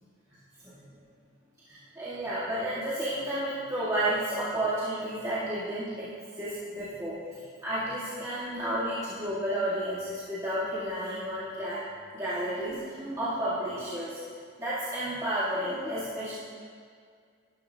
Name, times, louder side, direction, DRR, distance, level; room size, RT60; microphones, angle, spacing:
voice 1, 1.7-6.1 6.3-7.2 7.6-11.8 12.1-14.2 14.6-16.3, right 1 dB, 15° right, -11 dB, 1.8 m, -31 dB
12.5 x 11.0 x 2.8 m, 2.1 s
head